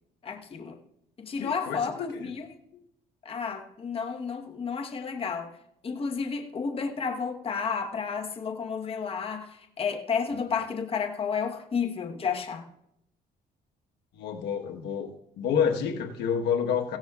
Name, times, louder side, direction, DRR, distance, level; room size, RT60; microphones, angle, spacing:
voice 1, 0.2-0.8 1.2-2.5 3.2-5.6 5.8-12.7, left 6 dB, 35° left, 3 dB, 1.1 m, -31 dB
voice 2, 1.4-2.3 14.2-15.1 15.4-17.0, left 7 dB, 80° left, 3 dB, 1.2 m, -28 dB
16.0 x 12.0 x 2.4 m, 0.78 s
cardioid pair, 110°, 17 cm